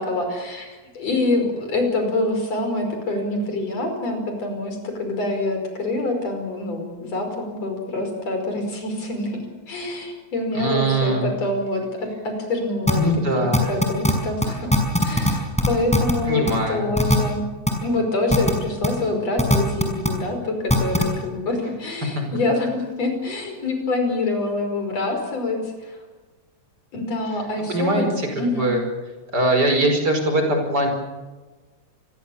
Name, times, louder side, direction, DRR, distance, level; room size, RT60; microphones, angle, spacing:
voice 1, 0.0-9.4 9.7-13.0 13.7-14.7 15.0-17.5 17.8-26.0 26.9-28.0 28.3-28.7, left 2 dB, 60° left, 4 dB, 6.5 m, -25 dB
voice 2, 10.5-11.3 13.0-13.7 16.3-16.9 22.2-22.3 27.7-28.8 29.3-30.9, right 1 dB, 30° right, 4 dB, 5.6 m, -21 dB
sound 1, 12.9-13.0 13.5-14.1 14.4-14.5 14.7-15.3 15.6-16.1 16.5-16.6 17.0-17.2 17.7-17.8 18.3-18.5 18.8-18.9 19.4-20.1 20.7-21.0, equal, ahead, 5.1 m, -18 dB
28.0 x 22.0 x 7.2 m, 1.3 s
omnidirectional pair, 3.4 m